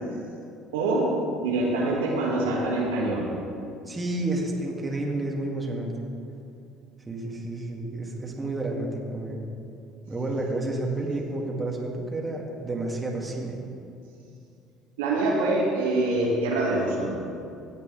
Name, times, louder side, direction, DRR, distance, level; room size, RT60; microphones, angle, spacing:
voice 1, 0.7-3.3 15.0-17.1, right 2 dB, 75° right, -3 dB, 1.9 m, -25 dB
voice 2, 3.9-5.9 7.1-9.4 10.1-13.6, right 2 dB, 20° right, -1 dB, 2.2 m, -30 dB
17.0 x 8.4 x 3.4 m, 2.6 s
hypercardioid pair, 60°, 0 cm